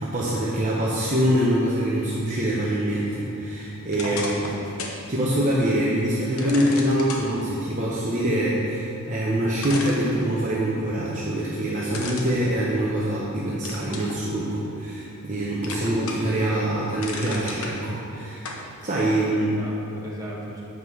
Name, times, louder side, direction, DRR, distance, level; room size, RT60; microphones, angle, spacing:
voice 1, 0.0-4.2 5.1-18.5 18.8-19.5, right 1 dB, 35° right, -6 dB, 0.9 m, -24 dB
sound 1, 3.9-5.0 5.4-5.5 6.4-7.3 9.0-9.1 9.6-10.7 11.9-13.2 13.6-14.2 14.7-15.3 15.6-16.4 16.7-17.7 18.4-18.6, left 3 dB, 75° left, 1.0 m, -34 dB
voice 2, 4.0-4.9 19.3-20.6, right 1 dB, 15° right, -6 dB, 1.5 m, -38 dB
8.0 x 5.2 x 5.5 m, 2.7 s
head